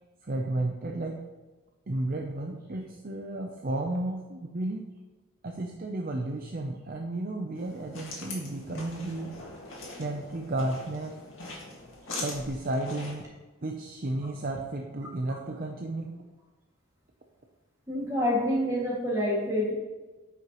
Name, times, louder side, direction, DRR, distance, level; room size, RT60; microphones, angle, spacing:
voice 1, 0.2-1.2 1.9-4.9 5.4-9.3 10.0-11.1 12.2-13.3 13.6-16.1, right 2 dB, 40° right, 2 dB, 0.5 m, -33 dB
sound 1, 7.5-13.2, left 2 dB, 65° left, 2.0 m, -42 dB
voice 2, 17.9-19.7, left 1 dB, 15° right, -5 dB, 2.1 m, -27 dB
9.2 x 5.9 x 3.0 m, 1.2 s
head